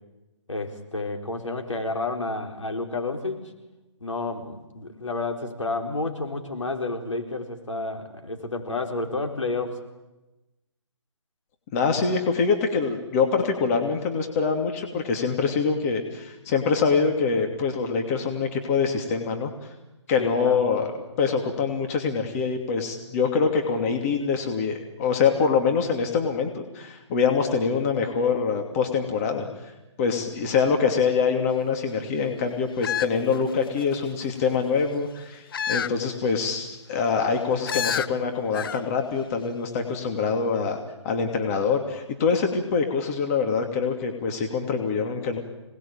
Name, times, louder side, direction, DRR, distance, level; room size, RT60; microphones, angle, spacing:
voice 1, 0.5-3.4 4.0-9.8 20.2-20.6 30.0-30.1, left 3 dB, 85° left, 3 dB, 4.4 m, -30 dB
voice 2, 11.7-19.5 20.1-20.9 21.2-29.5 30.0-35.4 35.7-40.8 41.0-45.4, left 5 dB, 30° left, 4 dB, 2.7 m, -24 dB
sound 1, 32.8-34.0 35.5-36.0 36.4-36.5 37.7-38.1 38.5-38.8 39.1-39.2, left 8 dB, 50° left, 0.8 m, -29 dB
26.0 x 20.0 x 9.0 m, 1.0 s
figure-of-eight pair, 145°, 16 cm